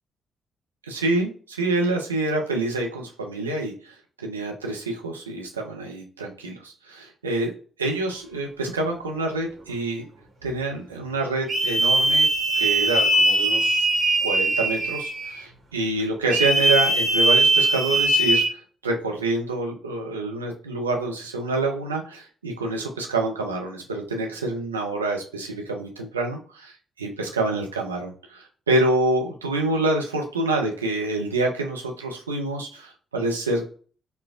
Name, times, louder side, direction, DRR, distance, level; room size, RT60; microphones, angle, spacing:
voice 1, 0.9-7.5 7.8-10.1 10.4-12.2 12.5-13.9 14.2-33.7, right 2 dB, 85° right, 1 dB, 0.5 m, -27 dB
sound 1, 11.5-15.4 16.3-18.5, right 1 dB, 45° right, 1.1 m, -20 dB
4.2 x 2.2 x 2.4 m, 0.42 s
figure-of-eight pair, 40°, 0 cm